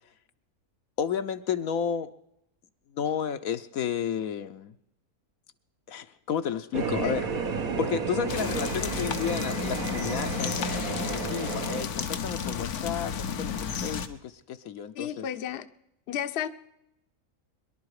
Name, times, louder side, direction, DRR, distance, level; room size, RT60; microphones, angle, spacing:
voice 1, 1.0-2.1 2.9-4.7 5.9-7.3 7.8-15.3, left 8 dB, 70° left, 9 dB, 1.1 m, -32 dB
sound 1, 6.7-11.8, right 5 dB, 70° right, 1.6 m, -32 dB
sound 2, 8.3-14.1, left 7 dB, 90° left, 1.5 m, -32 dB
voice 2, 14.9-15.7 16.1-16.5, left 9 dB, 55° left, 10 dB, 0.9 m, -32 dB
23.5 x 11.5 x 4.8 m, 0.82 s
omnidirectional pair, 1.6 m